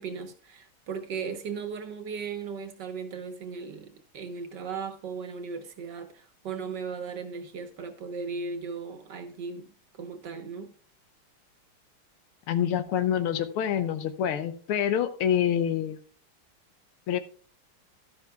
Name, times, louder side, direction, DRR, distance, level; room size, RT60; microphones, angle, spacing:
voice 1, 0.0-10.7, right 5 dB, 60° right, 1.7 m, -37 dB
voice 2, 12.5-16.0 17.1-17.2, left 9 dB, 85° left, 1.8 m, -26 dB
11.5 x 11.5 x 2.3 m
omnidirectional pair, 2.3 m